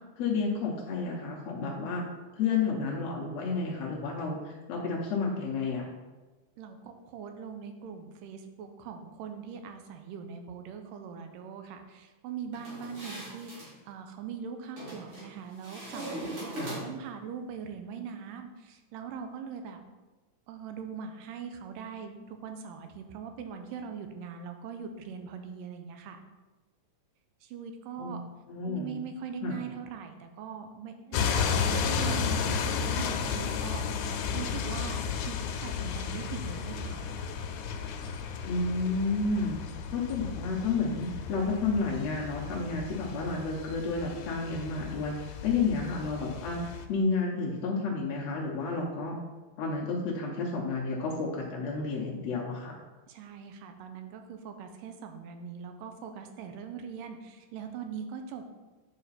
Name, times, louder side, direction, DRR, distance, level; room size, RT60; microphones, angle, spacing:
voice 1, 0.2-2.0 2.4-5.9 28.0-28.2 28.5-29.0 29.4-29.6 38.4-39.6 39.9-46.6 46.9-49.2 49.6-52.8, left 4 dB, 65° left, -3 dB, 1.8 m, -31 dB
voice 2, 6.6-19.8 20.5-26.2 27.4-28.2 28.6-34.1 34.3-37.2 53.1-58.4, right 6 dB, 80° right, 6 dB, 2.3 m, -41 dB
sound 1, 12.5-13.7 14.8-15.3 15.6-17.1, right 1 dB, 45° right, 2.9 m, -39 dB
sound 2, 31.1-46.9, left 6 dB, 90° left, 2.4 m, -33 dB
8.7 x 5.0 x 4.1 m, 1.2 s
omnidirectional pair, 4.0 m